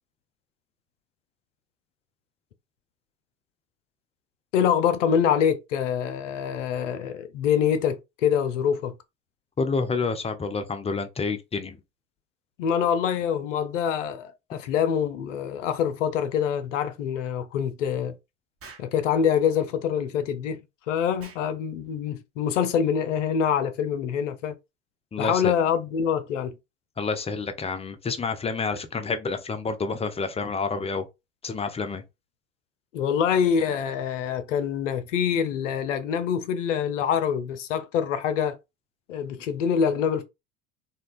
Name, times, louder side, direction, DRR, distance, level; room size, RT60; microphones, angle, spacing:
voice 1, 4.5-8.9 12.6-18.2 18.8-20.6 20.9-24.6 25.2-26.6 32.9-38.6 39.1-40.2, left 8 dB, 85° left, 0.5 m, -25 dB
voice 2, 9.6-11.8 25.1-25.5 27.0-31.1 31.4-32.0, left 4 dB, 15° left, 0.4 m, -29 dB
Explosion, 18.6-19.0 21.2-21.5, right 5 dB, 40° right, 1.0 m, -46 dB
2.7 x 2.2 x 2.4 m
hypercardioid pair, 70°, 36 cm